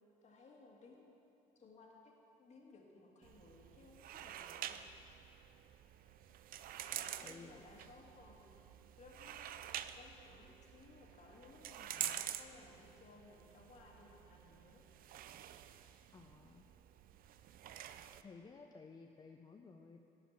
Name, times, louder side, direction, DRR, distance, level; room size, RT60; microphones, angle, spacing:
voice 1, 0.2-1.2 1.6-2.1 2.4-4.8 7.0-8.5 9.0-9.5 9.9-14.8, left 3 dB, 40° left, -1 dB, 1.7 m, -60 dB
Opening Curtain, 3.2-18.2, right 11 dB, 60° right, 0.4 m, -48 dB
voice 2, 7.2-7.7 16.1-16.6 18.2-20.0, left 4 dB, 25° left, 3 dB, 0.4 m, -55 dB
11.0 x 5.0 x 7.2 m, 2.9 s
cardioid pair, 110°, 17 cm